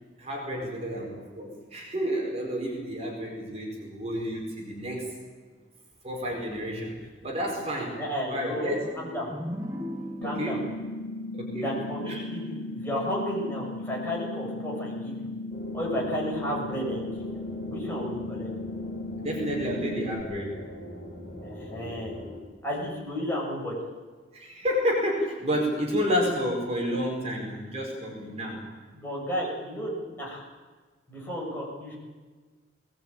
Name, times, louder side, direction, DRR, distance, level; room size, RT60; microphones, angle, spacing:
voice 1, 0.2-5.1 6.0-8.0 8.3-8.8 10.2-10.6 11.3-11.7 12.1-12.2 19.2-20.5 24.3-28.7, equal, 35° right, 0 dB, 4.8 m, -30 dB
voice 2, 8.0-9.3 10.2-10.6 11.5-15.3 15.7-17.3 17.7-18.5 21.4-22.2 22.6-23.7 28.9-30.5 31.1-32.0, equal, 10° left, -3 dB, 6.9 m, -33 dB
sound 1, 8.8-12.5, equal, 15° right, 1.6 m, -39 dB
sound 2, 10.2-20.2, left 2 dB, 90° left, 2.3 m, -36 dB
sound 3, 15.5-22.4, left 1 dB, 30° left, 5.4 m, -41 dB
20.5 x 19.5 x 9.0 m, 1.4 s
head